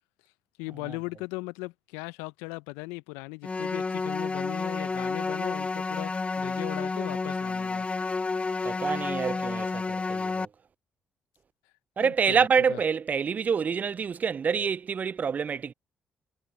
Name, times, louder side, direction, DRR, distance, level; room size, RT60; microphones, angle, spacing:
voice 1, 0.6-7.9 12.0-12.8, left 26 dB, 80° left, 0.8 m, -38 dB
sound 1, 3.4-10.5, left 4 dB, 30° left, 0.8 m, -30 dB
voice 2, 8.6-10.5 12.0-15.7, right 6 dB, 45° right, 0.5 m, -27 dB
hypercardioid pair, 40°, 4 cm